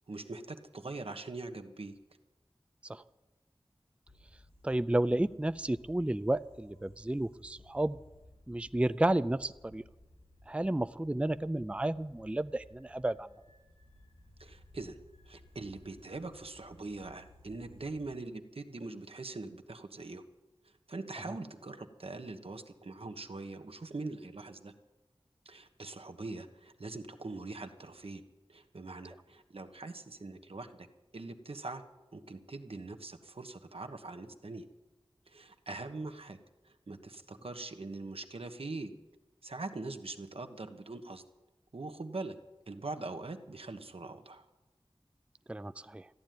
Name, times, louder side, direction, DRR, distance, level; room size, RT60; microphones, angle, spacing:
voice 1, 0.1-2.0 14.4-15.0 15.3-20.2 20.6-24.7 25.4-28.2 28.5-30.9 31.1-31.8 32.1-34.6 35.3-36.4 36.6-38.9 39.4-41.2 41.7-42.3 42.7-44.4, right 3 dB, 80° right, 7 dB, 1.2 m, -42 dB
sound 1, 4.1-18.1, left 1 dB, 85° left, 6.4 m, -59 dB
voice 2, 4.6-8.0 8.5-9.8 10.5-13.3 45.5-46.1, right 1 dB, 10° right, 14 dB, 0.4 m, -32 dB
14.0 x 10.5 x 9.3 m, 1.1 s
wide cardioid pair, 45°, 10 cm